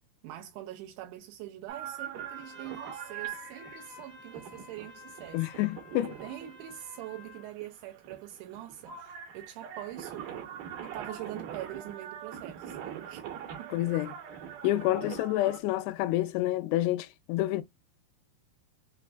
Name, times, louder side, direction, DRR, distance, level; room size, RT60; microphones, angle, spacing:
voice 1, 0.2-5.5 5.9-10.5 10.8-13.2 13.6-13.8, right 13 dB, 85° right, 2.6 m, -43 dB
sound 1, 1.7-15.6, right 9 dB, 70° right, 2.2 m, -43 dB
Trumpet, 2.1-7.5, left 5 dB, 55° left, 1.5 m, -51 dB
voice 2, 5.3-6.2 13.7-14.1 14.6-17.6, left 16 dB, 85° left, 2.6 m, -28 dB
6.2 x 2.5 x 2.3 m
omnidirectional pair, 4.8 m